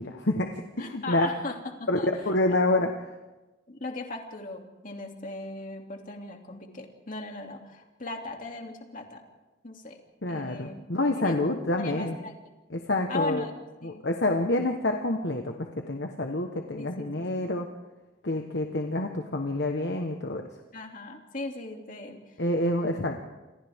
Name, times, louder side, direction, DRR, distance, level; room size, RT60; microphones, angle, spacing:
voice 1, 0.0-1.3 1.9-2.0 2.2-3.1 10.2-12.2 12.7-13.4 13.8-15.5 15.9-17.7 18.2-20.4 22.4-23.2, left 2 dB, 65° left, 3 dB, 1.3 m, -27 dB
voice 2, 0.8-2.1 2.5-2.6 3.7-9.2 9.6-10.0 10.3-10.8 11.1-12.4 13.1-13.5 13.8-14.0 16.8-17.3 20.7-22.4, left 2 dB, 45° left, 2 dB, 2.7 m, -38 dB
29.0 x 26.0 x 3.7 m, 1.1 s
head